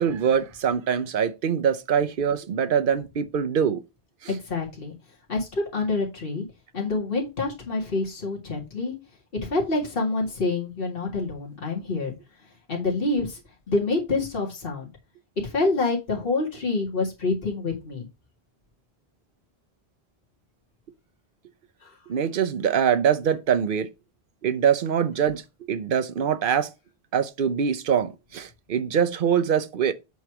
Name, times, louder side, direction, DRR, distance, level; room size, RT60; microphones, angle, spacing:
voice 1, 0.0-3.8 4.2-4.3 22.1-23.9 24.4-25.4 25.7-26.7 27.1-29.9, right 8 dB, 60° right, 0.8 m, -23 dB
voice 2, 4.3-4.9 5.3-6.4 6.7-8.9 9.4-12.1 12.7-13.4 13.7-14.9 15.4-18.1 21.8-21.9, left 3 dB, 65° left, 2.1 m, -27 dB
8.1 x 3.2 x 5.9 m
omnidirectional pair, 1.0 m